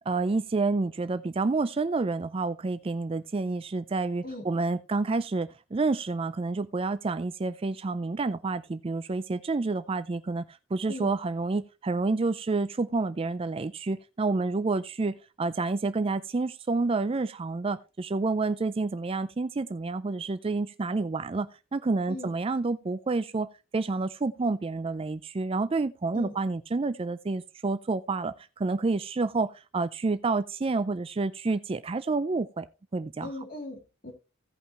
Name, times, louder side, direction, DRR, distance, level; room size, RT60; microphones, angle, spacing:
voice 1, 0.1-23.5 23.7-32.7 32.9-33.4, right 3 dB, 25° right, 0.4 m, -29 dB
voice 2, 33.2-34.1, left 1 dB, 45° left, 2.8 m, -39 dB
16.5 x 5.6 x 2.9 m
head